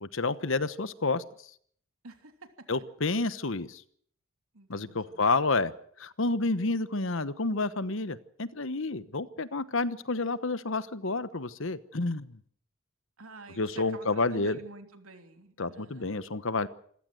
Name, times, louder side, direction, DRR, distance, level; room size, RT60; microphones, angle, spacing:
voice 1, 0.0-1.2 2.7-3.8 4.7-5.7 6.0-12.4 13.6-14.6 15.6-16.7, left 3 dB, 65° left, 15 dB, 1.1 m, -29 dB
voice 2, 2.0-2.8 4.5-5.3 13.2-16.3, right 3 dB, 80° right, 6 dB, 3.2 m, -49 dB
26.5 x 16.0 x 7.8 m, 0.63 s
head